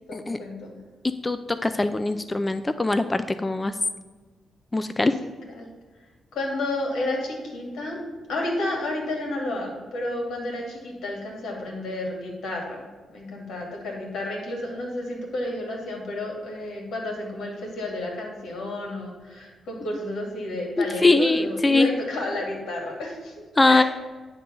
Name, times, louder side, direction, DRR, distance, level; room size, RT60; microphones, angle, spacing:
voice 1, 0.1-0.7 5.0-5.1 5.6-5.7 6.3-8.0 8.3-23.8, left 1 dB, 85° left, 0 dB, 2.6 m, -31 dB
voice 2, 1.2-3.7 4.7-5.1 20.8-21.9 23.6-23.8, left 2 dB, 20° left, 11 dB, 0.4 m, -22 dB
9.9 x 3.8 x 7.0 m, 1.4 s
cardioid pair, 110°, 0 cm